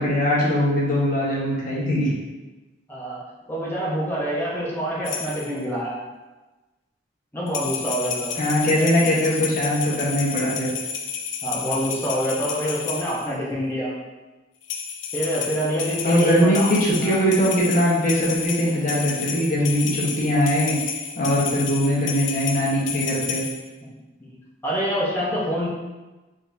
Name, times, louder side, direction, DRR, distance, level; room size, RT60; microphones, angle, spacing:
voice 1, 0.0-2.1 8.3-10.7 16.0-23.4, equal, 45° left, -6 dB, 1.2 m, -21 dB
voice 2, 3.5-6.0 7.3-8.4 11.4-13.9 15.1-16.7 17.0-17.2 21.4-21.7 24.2-24.4 24.6-25.7, equal, 10° left, -6 dB, 0.8 m, -26 dB
sound 1, 5.0-5.6 7.5-13.3 14.6-23.6, left 7 dB, 75° left, 0.5 m, -31 dB
4.0 x 3.7 x 2.7 m, 1.1 s
head